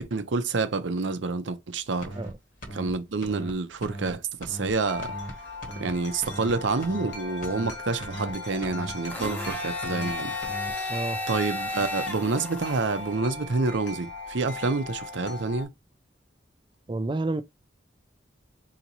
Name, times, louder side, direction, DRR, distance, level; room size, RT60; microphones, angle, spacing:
voice 1, 0.1-2.2 2.7-5.1 5.8-10.3 10.9-15.7, right 3 dB, 75° right, 0.6 m, -28 dB
sound 1, 2.0-2.3 2.6-2.9 3.2-3.5 3.8-4.1 4.4-4.7 5.0-5.3 5.6-5.9 6.2-6.5 6.8-7.1 7.4-7.7 8.0-8.3 8.6-8.9 9.2-9.5 9.8-10.1 10.4-10.7, right 1 dB, 45° left, 1.3 m, -38 dB
Wind chime, 4.8-15.7, left 3 dB, 70° left, 1.3 m, -39 dB
Domestic sounds home sounds, 9.1-13.1, left 2 dB, 10° left, 0.7 m, -34 dB
voice 2, 10.9-11.2 16.9-17.4, right 2 dB, 25° right, 0.3 m, -29 dB
4.0 x 2.8 x 2.9 m
head